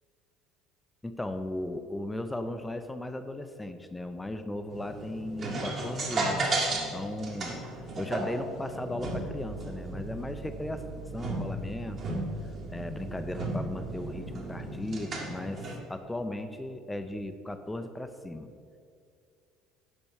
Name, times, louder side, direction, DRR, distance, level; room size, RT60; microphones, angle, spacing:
voice 1, 1.0-7.5 8.0-10.8 11.1-12.2 12.7-18.5, left 1 dB, 10° left, 8 dB, 0.7 m, -36 dB
sound 1, 4.7-15.8, right 2 dB, 45° right, 1.9 m, -35 dB
7.0 x 5.3 x 6.4 m, 2.4 s
figure-of-eight pair, 60°, 0 cm